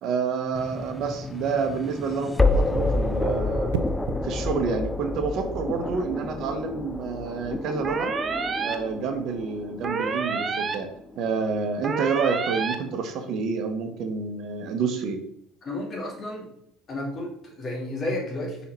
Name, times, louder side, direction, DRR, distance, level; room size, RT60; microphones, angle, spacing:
voice 1, 0.0-3.7 4.2-8.1 8.6-10.9 11.2-15.2, right 5 dB, 55° right, 6 dB, 1.0 m, -28 dB
sound 1, 0.5-11.6, left 2 dB, 10° left, 0.4 m, -29 dB
sound 2, 3.7-4.3 6.2-6.5, right 7 dB, 80° right, 0.5 m, -33 dB
sound 3, 7.8-8.7 9.8-10.7 11.8-12.7, right 4 dB, 35° right, 0.8 m, -28 dB
voice 2, 15.6-16.5 16.9-18.7, left 1 dB, 40° left, 0 dB, 2.3 m, -32 dB
5.7 x 4.2 x 4.3 m, 0.72 s
hypercardioid pair, 80°, 0 cm